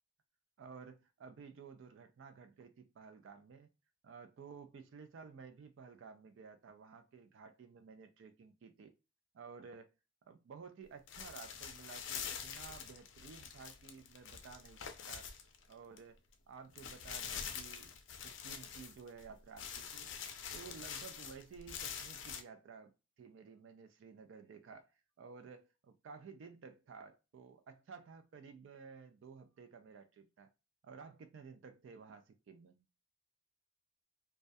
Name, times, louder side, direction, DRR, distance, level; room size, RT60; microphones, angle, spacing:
voice 1, 0.6-3.7 4.0-8.9 9.3-9.9 10.3-14.8 15.1-15.3 15.7-16.2 16.5-17.9 18.2-20.1 20.5-22.9 23.2-24.9 25.2-30.5 30.8-32.8, right 5 dB, 65° right, 0.3 m, -54 dB
sound 1, 11.1-16.0 16.3-16.4 16.7-19.3 19.6-22.4, left 7 dB, 65° left, 0.4 m, -45 dB
2.2 x 2.1 x 2.5 m
head